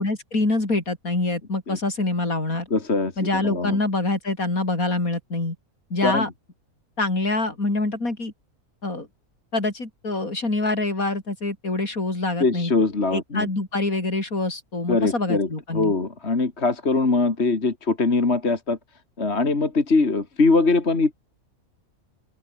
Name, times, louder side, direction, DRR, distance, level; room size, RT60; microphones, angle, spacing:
voice 1, 0.0-2.7 3.2-5.6 5.9-6.3 7.0-8.3 8.8-9.1 9.5-12.7 13.1-15.9, left 2 dB, 65° left, 5.6 m, -25 dB
voice 2, 2.7-3.8 6.0-6.3 12.4-13.5 14.9-18.8 19.2-21.1, left 3 dB, 45° left, 2.8 m, -22 dB
open air
omnidirectional pair, 1.6 m